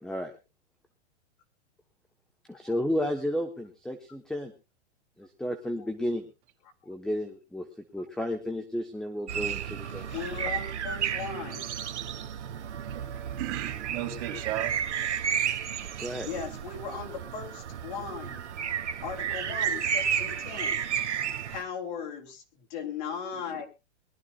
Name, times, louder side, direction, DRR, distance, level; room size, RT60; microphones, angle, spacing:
voice 1, 0.0-0.3 2.5-4.5 5.2-6.3 6.9-7.7 7.9-10.1 16.0-16.3, left 1 dB, ahead, 6 dB, 1.2 m, -32 dB
sound 1, 9.3-21.6, right 8 dB, 85° right, 1.5 m, -32 dB
voice 2, 10.0-11.7 16.2-18.4 19.0-20.8 21.4-23.7, left 6 dB, 45° left, 2 dB, 3.2 m, -37 dB
voice 3, 12.8-14.7 23.3-23.6, right 12 dB, 50° right, 5 dB, 3.8 m, -36 dB
22.5 x 13.0 x 2.5 m, 0.27 s
hypercardioid pair, 135°, 34 cm